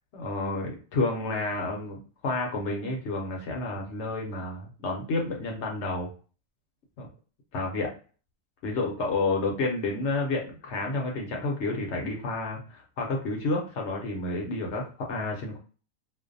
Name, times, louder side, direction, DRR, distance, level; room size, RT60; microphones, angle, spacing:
voice 1, 0.1-6.1 7.0-7.1 7.5-7.9 8.6-15.6, left 2 dB, 60° left, 0 dB, 0.8 m, -30 dB
2.5 x 2.1 x 2.5 m, 0.38 s
omnidirectional pair, 1.5 m